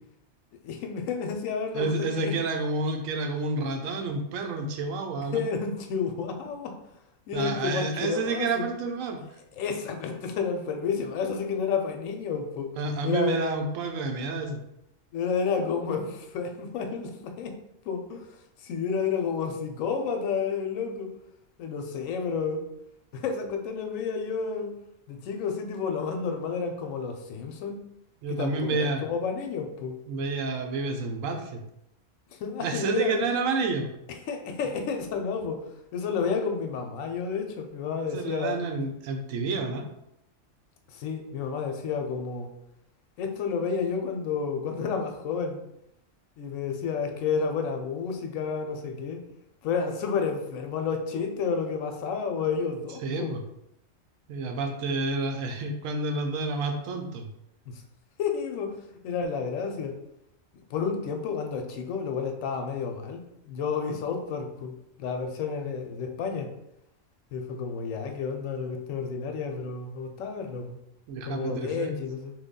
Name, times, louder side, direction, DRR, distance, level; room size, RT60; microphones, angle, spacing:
voice 1, 0.6-2.3 5.3-6.8 7.3-8.7 9.6-12.7 13.0-13.5 15.1-17.6 17.9-18.3 18.6-21.1 21.6-22.6 23.1-24.7 25.1-27.8 28.3-29.9 32.4-33.2 34.3-35.6 35.9-38.6 40.9-42.5 43.2-45.6 46.4-49.2 49.6-53.3 57.7-57.8 58.2-58.7 59.0-59.9 60.7-64.7 65.0-66.5 67.3-70.8 71.2-72.3, left 5 dB, 80° left, 5 dB, 1.0 m, -30 dB
voice 2, 1.7-5.4 7.3-9.2 12.8-14.6 28.2-29.0 30.1-31.6 32.6-33.9 38.0-39.9 53.0-53.4 54.3-57.3 71.1-72.0, right 3 dB, 80° right, 4 dB, 1.0 m, -29 dB
3.2 x 2.2 x 3.6 m, 0.82 s
omnidirectional pair, 1.3 m